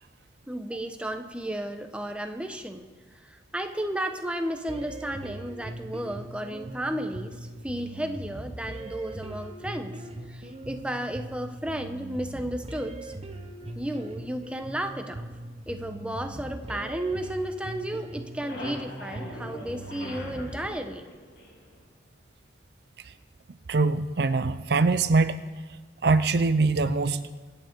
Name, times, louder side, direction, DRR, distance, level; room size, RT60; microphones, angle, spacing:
voice 1, 0.5-2.9 3.2-9.9 10.3-13.1 13.8-15.3 15.7-21.0, right 1 dB, 5° right, 6 dB, 0.9 m, -33 dB
sound 1, 4.7-20.7, right 1 dB, 35° right, 1.0 m, -40 dB
sound 2, 16.7-17.8 18.1-21.8, left 1 dB, 65° left, 3.2 m, -43 dB
voice 2, 23.7-25.4 26.0-27.3, right 3 dB, 60° right, 12 dB, 0.5 m, -23 dB
25.0 x 8.9 x 4.6 m, 1.3 s
head